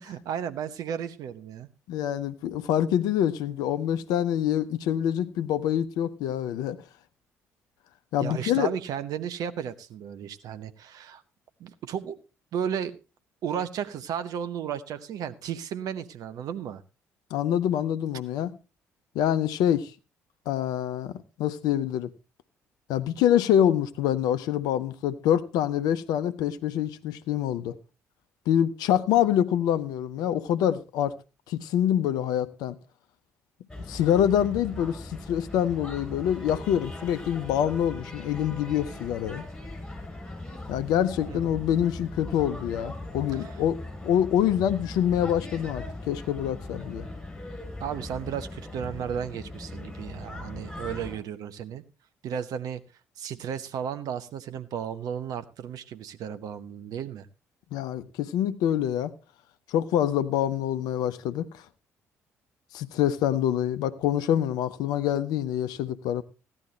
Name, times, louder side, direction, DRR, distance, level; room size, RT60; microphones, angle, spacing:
voice 1, 0.0-1.7 8.2-11.2 11.6-12.2 12.5-12.9 13.4-16.8 41.3-41.5 43.3-43.4 47.8-51.8 52.2-52.8 53.2-57.3, right 8 dB, 55° right, 1.0 m, -34 dB
voice 2, 1.9-6.8 8.1-8.7 17.3-18.5 19.1-19.9 20.5-21.1 21.4-22.1 22.9-27.7 28.5-31.1 31.5-32.8 33.9-39.4 40.7-47.1 57.7-59.1 59.7-61.5 62.7-66.2, left 10 dB, 60° left, 0.8 m, -26 dB
sound 1, 33.7-51.2, left 2 dB, 10° left, 5.9 m, -39 dB
15.5 x 11.0 x 3.2 m
figure-of-eight pair, 45°, 8 cm